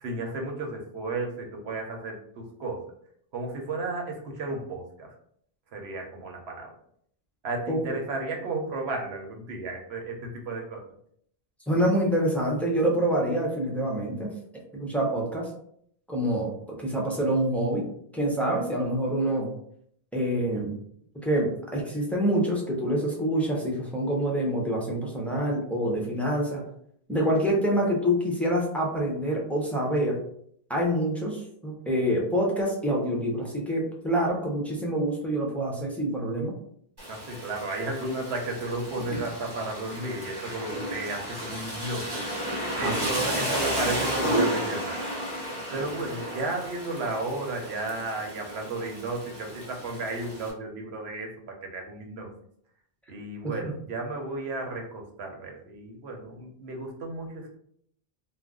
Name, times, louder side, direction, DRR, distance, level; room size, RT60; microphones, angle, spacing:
voice 1, 0.0-2.8 3.3-4.9 5.7-6.7 7.4-10.8 37.1-42.1 42.8-45.0 45.7-52.3 53.1-57.6, right 2 dB, 85° right, 1 dB, 1.0 m, -33 dB
voice 2, 7.7-8.0 11.7-14.3 14.7-15.5 16.1-16.5 16.8-17.9 18.1-19.6 20.1-20.8 21.2-26.7 27.1-30.2 30.7-36.5 39.1-39.2 42.8-43.1 45.7-45.9 53.4-53.7, right 1 dB, ahead, -3 dB, 0.5 m, -26 dB
Rain, 37.0-50.5, equal, 25° right, 0.8 m, -33 dB
2.5 x 2.2 x 3.6 m, 0.66 s
omnidirectional pair, 1.0 m